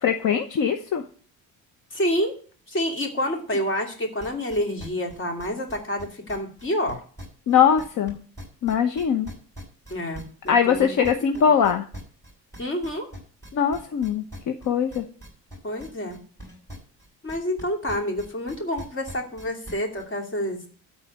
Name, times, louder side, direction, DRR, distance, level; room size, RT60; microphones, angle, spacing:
voice 1, 0.0-1.0 7.5-8.2 8.6-9.3 10.5-11.9 13.5-15.0, left 7 dB, 55° left, 7 dB, 1.0 m, -21 dB
voice 2, 1.9-2.3 2.7-7.0 9.9-10.9 11.4-11.5 12.6-13.1 15.6-16.2 17.2-20.7, equal, 30° left, 3 dB, 2.7 m, -28 dB
sound 1, 4.2-8.1 8.4-17.6 17.9-20.0, equal, 10° left, 5.6 m, -41 dB
13.0 x 4.4 x 8.1 m, 0.43 s
cardioid pair, 130°, 37 cm